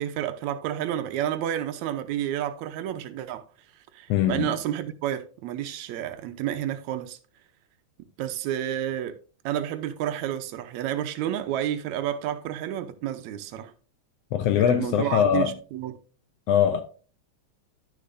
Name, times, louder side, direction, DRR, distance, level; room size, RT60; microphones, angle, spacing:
voice 1, 0.0-3.4 3.9-7.2 8.0-9.2 9.5-13.7 14.6-16.0, right 11 dB, 80° right, 2.0 m, -30 dB
voice 2, 4.1-4.5 14.3-15.5 16.5-16.8, left 9 dB, 75° left, 1.5 m, -22 dB
11.5 x 6.7 x 2.6 m
omnidirectional pair, 3.3 m